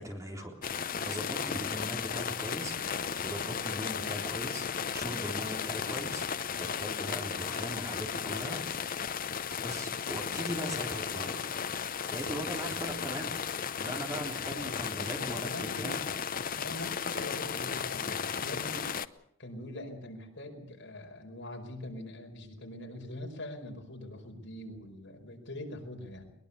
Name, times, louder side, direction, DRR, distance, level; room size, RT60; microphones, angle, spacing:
voice 1, 0.0-8.6 9.6-11.4 12.1-13.4 13.8-16.0, equal, 15° right, 2 dB, 3.7 m, -40 dB
sound 1, 0.6-19.1, left 7 dB, 45° left, 0.8 m, -35 dB
voice 2, 14.5-16.2 16.6-18.9 19.4-26.3, left 1 dB, 60° left, 3 dB, 4.9 m, -43 dB
22.0 x 21.5 x 6.9 m, 0.72 s
head